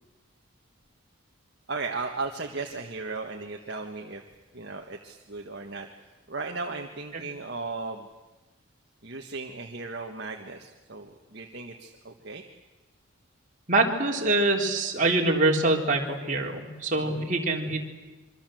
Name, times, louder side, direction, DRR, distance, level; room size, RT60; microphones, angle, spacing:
voice 1, 1.7-4.2 4.5-5.9 6.3-8.1 9.0-12.4 17.0-17.3, right 3 dB, 50° right, 2 dB, 1.6 m, -36 dB
voice 2, 13.7-17.8, right 2 dB, 35° right, 0 dB, 3.6 m, -24 dB
26.0 x 24.5 x 7.9 m, 1.2 s
head